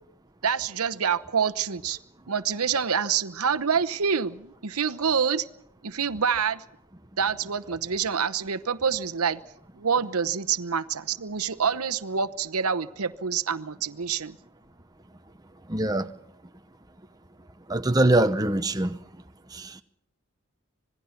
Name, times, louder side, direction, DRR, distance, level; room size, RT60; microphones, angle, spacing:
voice 1, 0.4-2.0 2.3-5.4 5.8-6.6 7.2-9.4 9.8-14.4, right 6 dB, 80° right, 0.9 m, -26 dB
voice 2, 15.7-16.1 17.7-19.0 19.5-19.7, right 1 dB, 15° right, 0.9 m, -23 dB
26.5 x 19.5 x 5.9 m
head